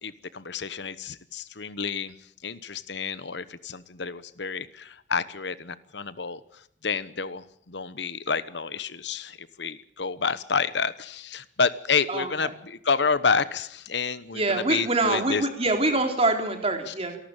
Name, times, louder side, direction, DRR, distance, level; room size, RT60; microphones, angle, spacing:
voice 1, 0.0-15.5 16.9-17.0, left 5 dB, 65° left, 15 dB, 1.1 m, -29 dB
voice 2, 12.1-12.5 14.3-17.2, right 2 dB, 30° right, 4 dB, 3.5 m, -25 dB
27.5 x 12.0 x 9.0 m, 0.68 s
head